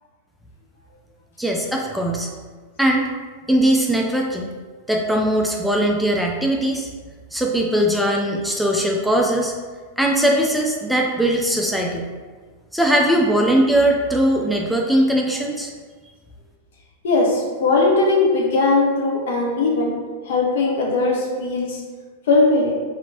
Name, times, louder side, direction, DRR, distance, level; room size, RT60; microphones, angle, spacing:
voice 1, 1.4-2.3 2.8-3.1 3.5-4.5 4.9-6.9 7.3-9.5 10.0-12.1 12.7-15.7, right 1 dB, ahead, 0 dB, 0.4 m, -20 dB
voice 2, 17.0-21.8 22.3-22.8, left 3 dB, 60° left, -1 dB, 0.7 m, -19 dB
3.4 x 2.9 x 2.7 m, 1.4 s
figure-of-eight pair, 90°, 0 cm